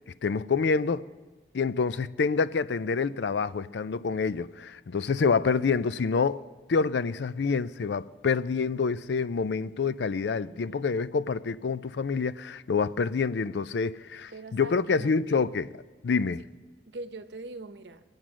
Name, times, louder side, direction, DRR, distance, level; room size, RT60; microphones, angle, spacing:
voice 1, 0.2-1.1 1.5-6.4 6.7-15.7 16.0-16.5, left 5 dB, 80° left, 0.4 m, -27 dB
voice 2, 10.4-11.0 14.3-15.5 16.9-18.0, right 2 dB, 85° right, 0.8 m, -43 dB
23.0 x 8.8 x 6.2 m
head